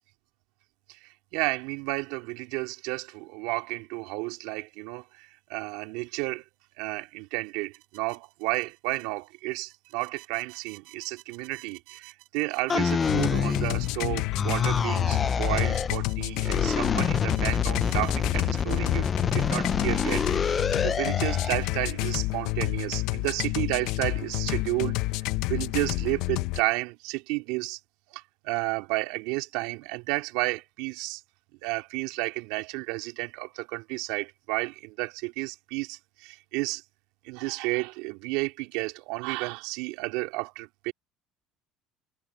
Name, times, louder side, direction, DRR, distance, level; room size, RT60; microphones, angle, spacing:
voice 1, 1.3-6.4 6.8-25.0 25.5-27.8 28.1-31.2 31.6-36.8 37.2-40.9, right 24 dB, 80° right, 3.2 m, -32 dB
sound 1, 12.7-14.0 14.3-16.0 16.4-21.6, left 6 dB, 30° left, 0.7 m, -27 dB
sound 2, 13.0-26.6, left 21 dB, 75° left, 0.9 m, -29 dB
supercardioid pair, 100°, 0 cm